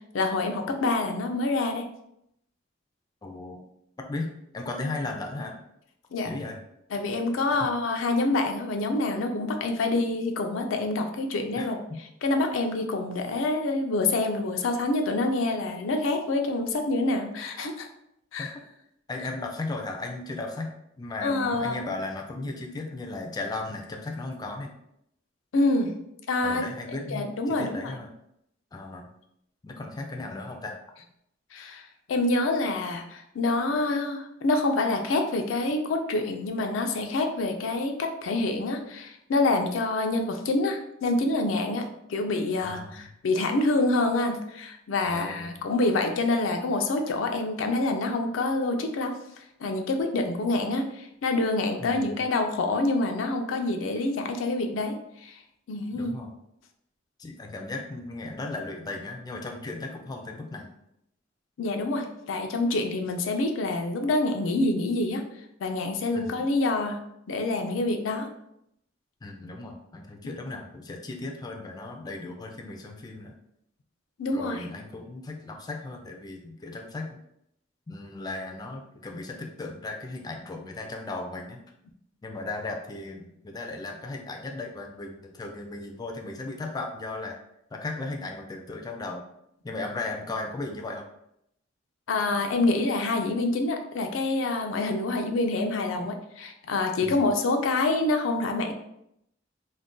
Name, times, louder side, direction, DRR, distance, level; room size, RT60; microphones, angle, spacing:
voice 1, 0.1-1.8 6.1-6.3 6.9-11.8 12.2-17.9 18.3-18.5 21.2-21.8 25.5-25.9 26.3-26.6 27.1-28.0 31.5-49.1 49.6-55.4 55.7-56.1 61.6-65.2 65.6-67.0 67.3-68.3 74.2-74.7 92.1-98.7, left 2 dB, 90° left, 4 dB, 0.4 m, -27 dB
voice 2, 3.2-3.6 4.1-5.6 6.2-6.6 7.5-7.6 11.6-12.0 18.4-18.5 19.1-24.7 26.4-28.1 28.7-29.1 29.6-30.8 42.6-43.0 45.0-45.6 51.8-52.1 55.9-56.3 57.2-60.8 66.1-66.5 69.2-73.3 74.3-77.2 77.9-81.6 82.2-87.4 87.7-89.2 89.6-91.0 97.0-97.3, left 2 dB, 20° left, 2 dB, 0.3 m, -36 dB
2.4 x 2.2 x 3.6 m, 0.77 s
head